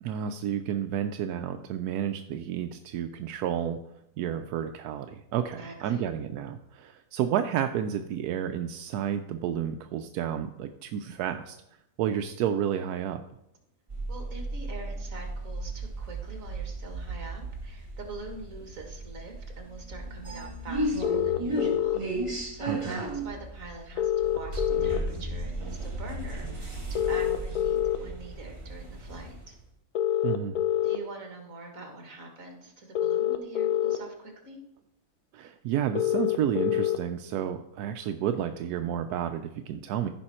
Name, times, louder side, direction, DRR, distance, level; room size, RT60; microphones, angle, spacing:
voice 1, 0.0-3.8 4.2-11.6 12.0-13.2 22.7-23.0 30.2-30.5 35.3-40.1, right 9 dB, 85° right, 7 dB, 1.1 m, -31 dB
voice 2, 5.6-6.0 14.1-29.6 30.8-34.6, right 2 dB, 60° right, 3 dB, 2.1 m, -44 dB
sound 1, 13.9-29.6, right 2 dB, 20° right, 1.6 m, -35 dB
sound 2, 21.0-22.0 24.0-25.0 26.9-28.0 29.9-31.0 32.9-34.0 35.9-37.0, left 12 dB, 80° left, 1.3 m, -26 dB
15.0 x 5.4 x 4.3 m, 0.80 s
omnidirectional pair, 1.6 m